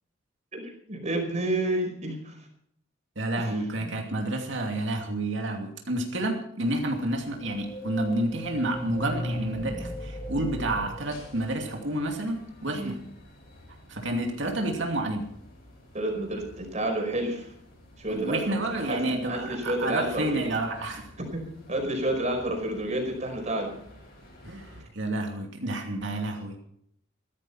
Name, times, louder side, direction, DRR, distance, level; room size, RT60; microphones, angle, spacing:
voice 1, 0.5-2.4 3.4-4.0 12.7-13.0 15.9-17.5 18.0-20.5 21.3-23.7, right 1 dB, 35° right, 2 dB, 5.2 m, -30 dB
voice 2, 3.2-13.0 13.9-15.3 18.1-21.1 24.4-26.6, right 1 dB, 65° right, 2 dB, 2.7 m, -30 dB
sound 1, 6.6-24.8, left 1 dB, 50° left, 7.7 m, -52 dB
sound 2, 7.4-12.0, left 1 dB, 20° left, 1.8 m, -37 dB
16.0 x 13.5 x 5.8 m, 0.71 s
head